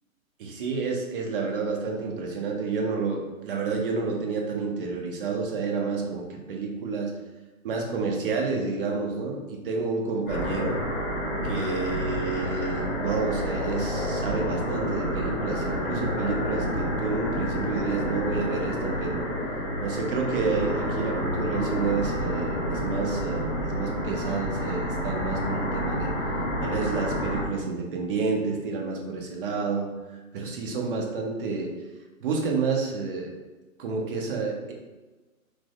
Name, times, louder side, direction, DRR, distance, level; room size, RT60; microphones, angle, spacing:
voice 1, 0.4-7.1 7.6-10.8 11.4-19.2 19.8-26.1 26.6-29.9 30.3-31.7 32.2-33.3 33.8-34.7, right 4 dB, 40° right, 1 dB, 0.6 m, -29 dB
sound 1, 10.3-27.5, equal, 20° left, 0.8 m, -29 dB
4.6 x 2.1 x 2.3 m, 1.2 s
hypercardioid pair, 140°, 42 cm